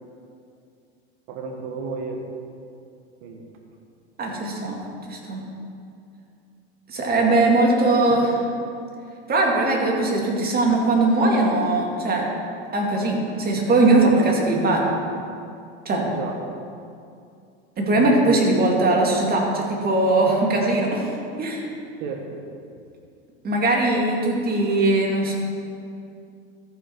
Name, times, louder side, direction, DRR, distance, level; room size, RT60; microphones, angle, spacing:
voice 1, 1.3-2.3 3.2-3.5 8.1-8.3 16.0-16.5 18.0-18.5 22.0-22.4, right 4 dB, 65° right, 2 dB, 1.3 m, -32 dB
voice 2, 4.2-4.8 5.1-5.4 6.9-8.3 9.3-12.2 12.7-14.9 15.9-16.1 17.8-21.1 21.4-21.6 23.4-25.3, right 2 dB, 30° right, -1 dB, 2.2 m, -20 dB
14.0 x 5.9 x 4.5 m, 2.5 s
hypercardioid pair, 105°, 32 cm